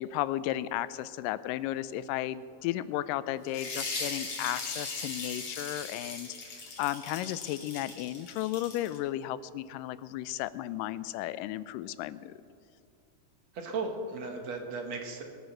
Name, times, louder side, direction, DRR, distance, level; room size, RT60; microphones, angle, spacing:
voice 1, 0.0-12.3, left 14 dB, 90° left, 16 dB, 2.2 m, -34 dB
sound 1, 3.5-9.0, left 3 dB, 45° left, 3.6 m, -39 dB
voice 2, 13.5-15.2, right 3 dB, 60° right, 3 dB, 2.3 m, -36 dB
22.0 x 9.1 x 6.4 m, 2.3 s
omnidirectional pair, 3.8 m